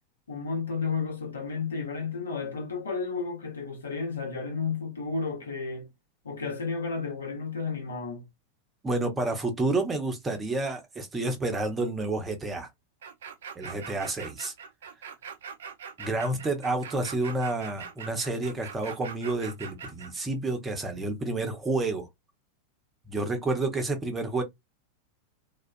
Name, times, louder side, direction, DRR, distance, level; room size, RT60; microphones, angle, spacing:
voice 1, 0.3-5.9 6.2-8.2, left 4 dB, 70° left, 0.9 m, -32 dB
voice 2, 8.8-12.7 13.6-14.5 16.0-22.1 23.1-24.4, right 2 dB, 15° right, 0.6 m, -29 dB
sound 1, 13.0-20.1, right 6 dB, 60° right, 0.4 m, -42 dB
2.3 x 2.1 x 2.5 m
figure-of-eight pair, 90°, 0 cm